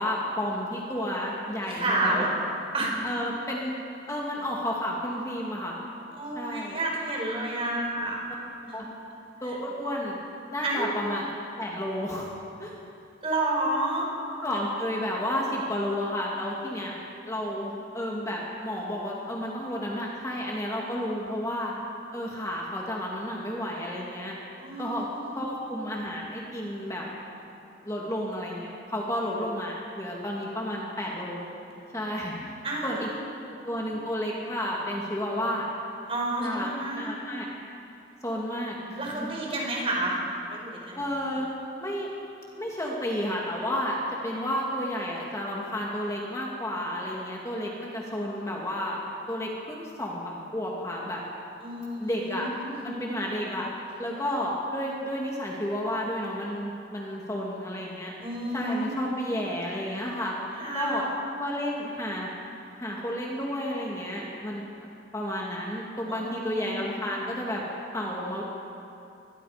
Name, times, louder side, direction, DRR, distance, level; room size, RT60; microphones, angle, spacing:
voice 1, 0.0-2.2 3.0-3.8 4.1-5.8 6.3-6.8 8.7-8.8 9.4-10.2 10.5-12.3 12.6-12.8 14.4-21.7 22.1-24.4 24.8-25.0 25.3-27.0 27.8-31.4 31.9-32.3 32.8-33.1 33.6-35.7 36.4-36.7 36.9-37.5 38.2-38.8 39.1-39.5 40.9-41.5 41.8-42.1 42.5-49.0 49.3-51.2 52.0-52.5 52.8-53.7 54.0-58.1 58.5-60.3 60.7-61.1 61.4-62.3 62.8-64.9 65.1-67.6 67.9-68.4, left 1 dB, 15° left, -3 dB, 2.4 m, -31 dB
voice 2, 1.6-2.3 2.7-3.0 6.1-8.2 8.6-8.8 9.5-9.6 10.6-10.9 13.2-14.1 24.6-25.5 32.6-33.2 36.1-37.1 39.0-40.2 40.5-41.0 51.6-52.9 58.2-59.0 60.5-61.1 66.1-66.8, right 2 dB, 35° right, -2 dB, 5.2 m, -30 dB
24.0 x 21.0 x 5.1 m, 2.7 s
head